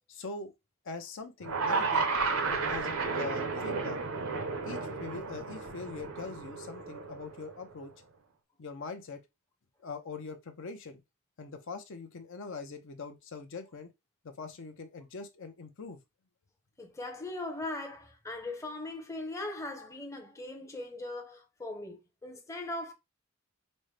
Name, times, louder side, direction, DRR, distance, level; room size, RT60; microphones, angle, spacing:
voice 1, 0.1-0.5 0.8-2.1 2.4-4.0 4.6-7.9 8.6-9.2 9.8-11.0 11.4-13.9 14.2-16.0, left 4 dB, 60° left, 0.6 m, -42 dB
sound 1, 1.4-7.7, right 4 dB, 70° right, 0.7 m, -33 dB
voice 2, 16.8-22.9, left 2 dB, 15° left, 0.7 m, -39 dB
5.2 x 2.1 x 3.2 m
head